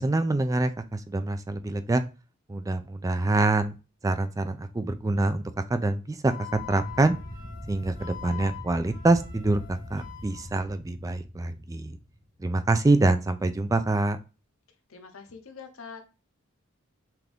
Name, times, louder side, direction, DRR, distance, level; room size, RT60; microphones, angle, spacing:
voice 1, 0.0-2.0 2.5-3.7 4.0-7.1 7.7-12.0 12.4-14.2, right 2 dB, 15° right, 10 dB, 0.3 m, -25 dB
Wind instrument woodwind instrument, 6.3-10.5, left 12 dB, 65° left, 1.8 m, -44 dB
sound 1, 6.5-12.3, left 1 dB, 20° left, 1.3 m, -42 dB
voice 2, 14.9-16.0, left 5 dB, 85° left, 6 dB, 0.9 m, -44 dB
5.8 x 2.6 x 3.4 m, 0.31 s
head